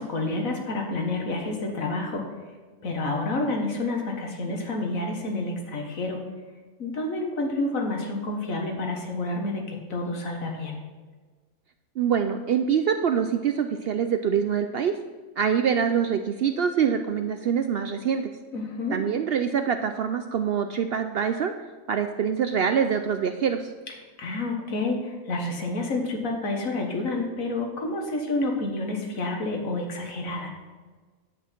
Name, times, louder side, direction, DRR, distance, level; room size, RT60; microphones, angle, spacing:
voice 1, 0.0-2.2 2.8-6.2 6.8-10.8 18.5-19.0 24.2-30.5, left 2 dB, 80° left, 2 dB, 1.9 m, -29 dB
voice 2, 12.0-14.9 15.4-18.3 18.9-21.5 21.9-23.7, right 7 dB, 65° right, 7 dB, 0.6 m, -25 dB
9.5 x 8.2 x 4.4 m, 1.4 s
omnidirectional pair, 1.4 m